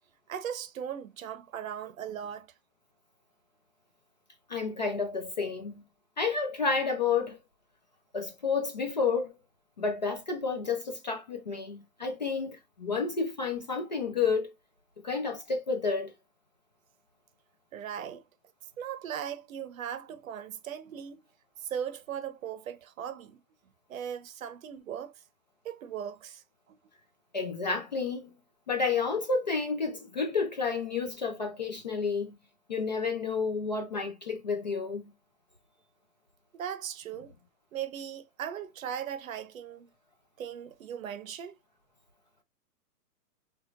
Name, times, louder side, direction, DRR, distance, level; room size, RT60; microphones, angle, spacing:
voice 1, 0.3-2.5 17.7-18.2 18.8-21.2 21.6-23.4 23.9-25.2 25.6-26.4 26.7-26.8 36.5-37.3 37.7-39.9 40.4-41.6, right 9 dB, 55° right, 0.8 m, -38 dB
voice 2, 4.5-5.8 6.2-7.4 8.1-9.4 9.8-14.5 15.0-16.1 27.3-28.3 28.7-32.4 32.7-35.0, left 4 dB, 30° left, 0.4 m, -30 dB
4.6 x 3.2 x 2.3 m
hypercardioid pair, 160°, 48 cm